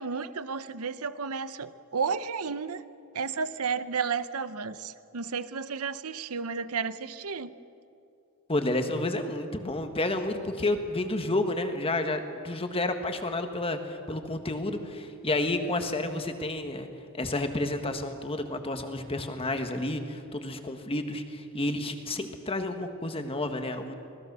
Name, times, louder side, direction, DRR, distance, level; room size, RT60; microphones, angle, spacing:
voice 1, 0.0-2.8 3.1-7.6, right 5 dB, 85° right, 13 dB, 0.8 m, -32 dB
voice 2, 8.5-16.9 17.1-23.9, left 2 dB, 25° left, 6 dB, 1.6 m, -30 dB
25.5 x 19.0 x 6.9 m, 2.6 s
head